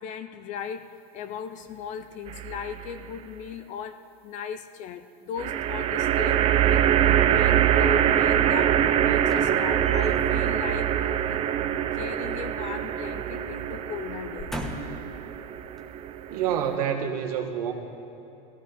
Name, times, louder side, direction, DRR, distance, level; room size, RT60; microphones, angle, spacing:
voice 1, 0.0-14.7, left 7 dB, 40° left, 11 dB, 0.5 m, -38 dB
sound 1, 2.3-2.9 5.4-16.8, right 10 dB, 30° right, 0.5 m, -24 dB
sound 2, 9.2-10.4 11.9-13.1 13.4-13.6 14.2-15.1 15.8-15.9, equal, ahead, 1.0 m, -39 dB
voice 2, 16.3-17.7, right 8 dB, 85° right, 3 dB, 1.6 m, -27 dB
16.0 x 15.0 x 4.1 m, 2.9 s
supercardioid pair, 145°, 19 cm